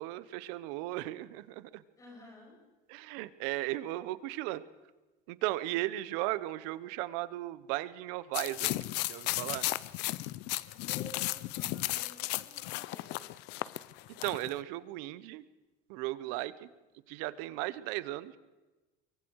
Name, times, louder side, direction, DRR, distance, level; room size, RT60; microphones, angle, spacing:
voice 1, 0.0-1.8 2.9-4.6 5.3-8.7 9.1-9.7 14.2-15.4 15.9-16.7 17.1-18.3, right 17 dB, 85° right, 16 dB, 1.1 m, -36 dB
voice 2, 2.0-2.6 10.9-13.2 16.2-16.3, left 2 dB, 15° left, -1 dB, 7.8 m, -52 dB
sound 1, 8.3-14.5, left 19 dB, 60° left, 0.7 m, -35 dB
25.0 x 23.5 x 4.8 m, 1.1 s
cardioid pair, 170°, 20 cm